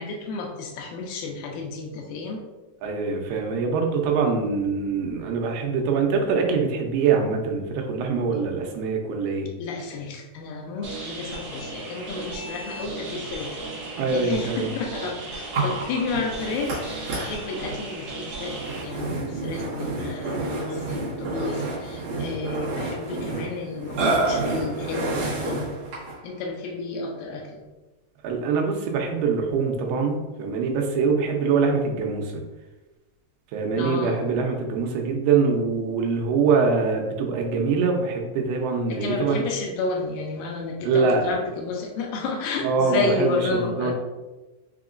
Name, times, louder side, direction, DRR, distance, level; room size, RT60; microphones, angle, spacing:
voice 1, 0.0-2.4 8.3-8.4 9.6-13.8 14.1-25.7 26.2-27.6 33.7-34.2 38.9-43.9, left 4 dB, 80° left, 1 dB, 2.2 m, -31 dB
voice 2, 2.8-9.5 14.0-14.7 28.2-32.4 33.5-39.4 40.8-41.4 42.6-43.9, right 5 dB, 90° right, 2 dB, 2.6 m, -24 dB
sound 1, 10.8-18.8, right 2 dB, 70° right, 1.4 m, -36 dB
Burping eructation, 15.5-26.2, right 2 dB, 55° right, 2.2 m, -29 dB
6.1 x 2.8 x 2.5 m, 1.1 s
omnidirectional pair, 4.3 m